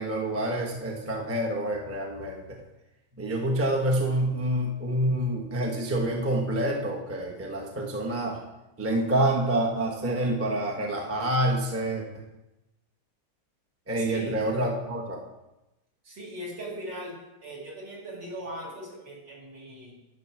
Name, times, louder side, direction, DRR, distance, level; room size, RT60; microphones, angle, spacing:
voice 1, 0.0-2.6 3.2-8.4 8.8-12.2 13.9-15.2, right 1 dB, 10° right, -1 dB, 0.7 m, -27 dB
voice 2, 14.0-14.4 16.0-19.9, right 1 dB, 55° right, -4 dB, 3.1 m, -39 dB
11.0 x 5.0 x 6.0 m, 0.96 s
omnidirectional pair, 2.3 m